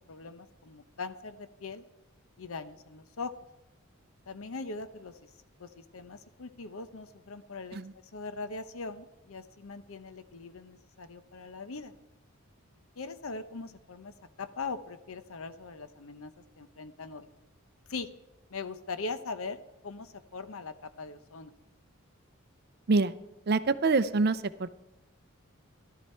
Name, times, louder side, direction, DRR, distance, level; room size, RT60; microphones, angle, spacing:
voice 1, 0.1-1.8 2.4-3.3 4.3-5.3 5.6-7.8 8.1-11.9 13.0-17.3 17.9-18.1 18.5-21.5, left 4 dB, 75° left, 11 dB, 0.8 m, -41 dB
voice 2, 23.5-24.7, right 3 dB, 45° right, 14 dB, 0.5 m, -26 dB
14.0 x 12.5 x 4.4 m, 0.94 s
head